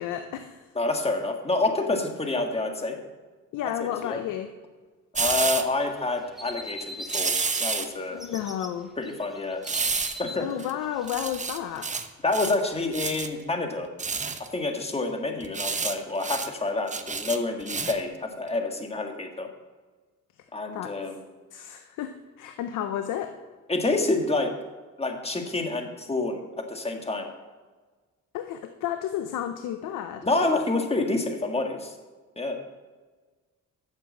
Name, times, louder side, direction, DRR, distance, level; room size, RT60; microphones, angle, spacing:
voice 1, 0.0-0.7 3.5-4.5 8.1-8.9 10.4-11.9 20.7-20.9 21.5-23.3 28.3-30.2, left 10 dB, 90° left, 8 dB, 0.7 m, -32 dB
voice 2, 0.8-3.0 3.8-4.2 5.2-7.3 7.6-8.2 9.0-9.6 10.2-10.5 12.2-13.9 14.4-19.5 20.5-21.2 23.7-24.5 25.0-27.3 30.2-31.9 32.4-32.6, left 2 dB, 20° left, 4 dB, 1.6 m, -28 dB
sound 1, 5.1-5.6 7.1-7.9 9.6-10.2 10.6-10.7 11.1-12.1 12.3-12.6 12.9-13.3 14.0-14.5 15.4-15.9 16.2-16.5 16.9-18.0 18.5-18.6, right 4 dB, 25° right, 0.9 m, -29 dB
sound 2, 5.8-7.8 8.1-8.7 9.0-12.0, equal, ahead, 1.6 m, -41 dB
8.9 x 6.8 x 7.4 m, 1.4 s
cardioid pair, 90°, 30 cm